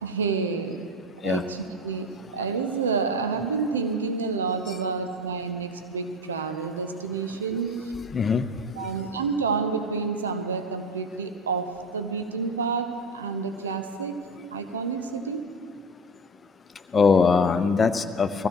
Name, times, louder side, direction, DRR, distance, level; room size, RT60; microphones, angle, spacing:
voice 1, 0.0-0.8 1.2-7.7 8.8-14.2 14.5-15.5, right 5 dB, 80° right, 7 dB, 0.8 m, -29 dB
voice 2, 8.1-8.4 16.9-18.5, left 5 dB, 30° left, 11 dB, 0.7 m, -21 dB
20.5 x 15.5 x 3.0 m, 2.3 s
figure-of-eight pair, 60°, 0 cm